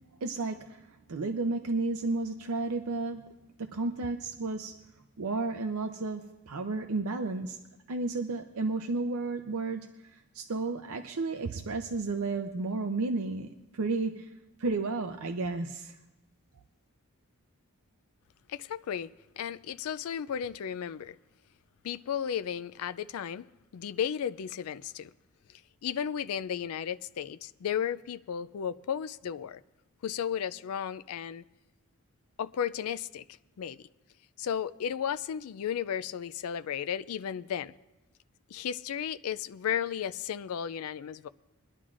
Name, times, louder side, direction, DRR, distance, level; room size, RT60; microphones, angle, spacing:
voice 1, 0.2-3.3 3.6-4.8 5.2-7.6 7.9-9.9 10.3-14.3 14.6-16.0, right 3 dB, 80° right, 0.6 m, -32 dB
voice 2, 18.5-19.1 19.4-21.2 21.8-25.1 25.8-29.6 30.0-31.4 32.4-33.2 33.6-33.8 34.4-37.7 38.5-41.3, left 8 dB, 80° left, 0.3 m, -34 dB
23.5 x 11.0 x 2.5 m
head